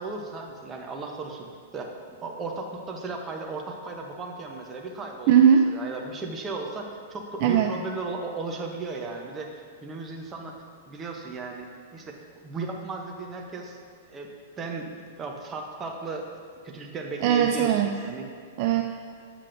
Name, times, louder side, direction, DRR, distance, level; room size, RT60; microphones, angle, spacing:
voice 1, 0.0-1.5 1.7-1.9 2.2-5.3 5.7-10.5 10.9-12.2 12.4-13.8 14.1-16.3 16.6-18.3, right 3 dB, 15° right, 1 dB, 0.7 m, -35 dB
voice 2, 5.3-5.7 7.4-7.7 17.2-17.9 18.6-18.8, right 8 dB, 40° right, 4 dB, 0.3 m, -19 dB
8.2 x 7.5 x 2.6 m, 2.1 s
supercardioid pair, 160°, 0 cm